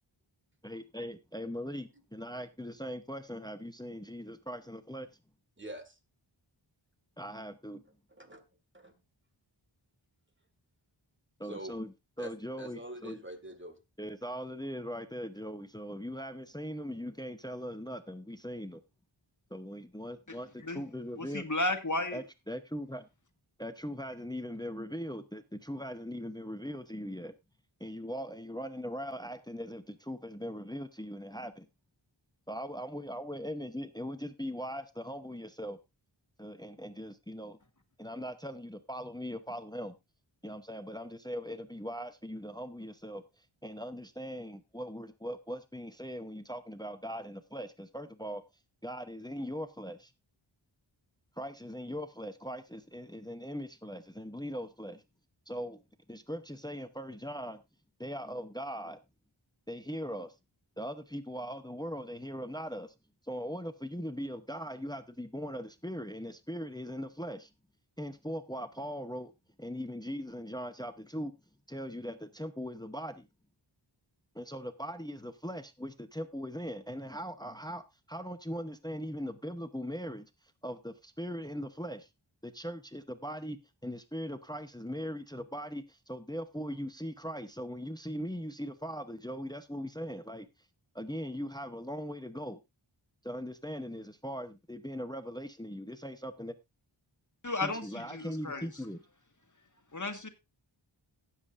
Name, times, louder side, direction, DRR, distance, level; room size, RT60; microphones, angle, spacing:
voice 1, 0.6-5.1 7.2-7.8 11.4-11.9 12.2-13.2 14.0-18.8 19.5-21.5 22.1-23.1 23.6-27.3 27.8-31.7 32.5-35.8 36.4-37.6 38.0-40.0 40.4-43.2 43.6-48.4 48.8-50.1 51.4-55.0 55.5-55.8 56.1-57.6 58.0-59.0 59.7-60.3 60.8-62.9 63.3-67.5 68.0-69.3 69.6-71.3 71.7-73.3 74.3-80.3 80.6-82.1 82.4-90.5 90.9-92.6 93.2-96.5 97.6-99.0, equal, 10° left, 0.8 m, -40 dB
voice 2, 5.6-6.0 8.1-8.4 8.7-9.0 11.4-11.8 12.2-13.8, right 1 dB, 25° right, 1.9 m, -45 dB
voice 3, 21.2-22.2 97.4-98.7 99.9-100.3, left 2 dB, 40° left, 1.8 m, -33 dB
16.5 x 7.5 x 2.5 m
wide cardioid pair, 40°, 48 cm